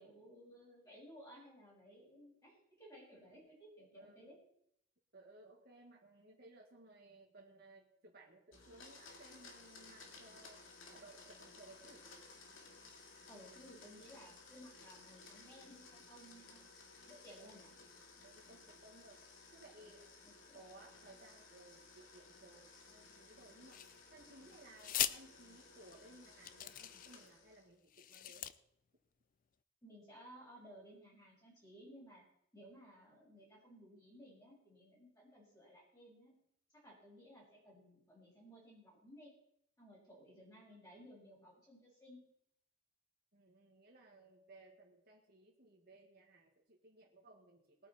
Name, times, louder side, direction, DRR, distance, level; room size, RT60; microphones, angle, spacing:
voice 1, 0.0-4.4 13.3-16.8 17.1-17.7 20.2-20.6 29.8-32.2 32.5-36.3 36.8-39.3 39.8-42.2, equal, 20° left, -7 dB, 5.8 m, -58 dB
voice 2, 3.9-4.3 5.1-10.6 10.9-12.1 17.4-17.6 18.2-19.2 19.5-20.1 20.5-23.9 24.1-28.5 43.3-47.9, right 2 dB, 50° right, -1 dB, 1.9 m, -60 dB
Domestic sounds home sounds, 8.5-27.7, left 3 dB, 75° left, 2.4 m, -58 dB
sound 1, 23.7-24.2 24.8-25.2 25.9-26.0 26.4-27.3 27.9-28.5, left 12 dB, 40° left, 0.4 m, -39 dB
20.0 x 8.9 x 4.3 m, 0.72 s
head